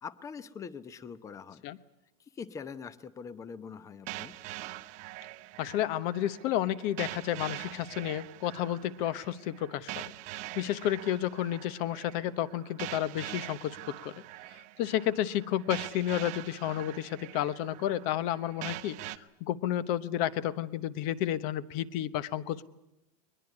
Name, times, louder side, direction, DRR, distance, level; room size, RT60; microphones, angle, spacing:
voice 1, 0.0-1.6 2.3-4.3, left 6 dB, 15° left, 16 dB, 0.8 m, -43 dB
sound 1, 4.1-19.2, right 18 dB, 35° right, 0.8 m, -44 dB
voice 2, 5.6-9.9 10.5-13.8 14.0-14.1 14.8-19.0 19.4-22.6, left 12 dB, 45° left, 16 dB, 1.0 m, -31 dB
21.5 x 21.5 x 9.8 m, 0.87 s
supercardioid pair, 165°, 20 cm